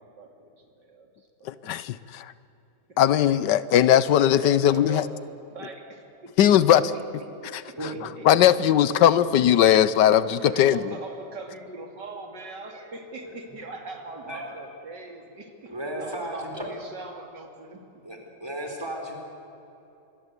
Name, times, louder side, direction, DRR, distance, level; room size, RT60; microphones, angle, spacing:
voice 1, 0.0-1.5 2.0-2.1 2.9-3.2 4.4-5.8 6.9-7.0 7.4-8.3 10.3-17.8, right 3 dB, 80° right, 4 dB, 3.2 m, -41 dB
voice 2, 1.4-2.3 3.0-5.0 6.4-6.8 7.5-7.6 8.2-10.8, left 10 dB, 80° left, 16 dB, 1.4 m, -19 dB
voice 3, 7.8-8.1 13.2-13.3 14.3-14.4 15.7-16.8 18.0-19.2, right 1 dB, 15° right, 2 dB, 4.3 m, -34 dB
26.0 x 21.5 x 8.3 m, 2.9 s
omnidirectional pair, 1.9 m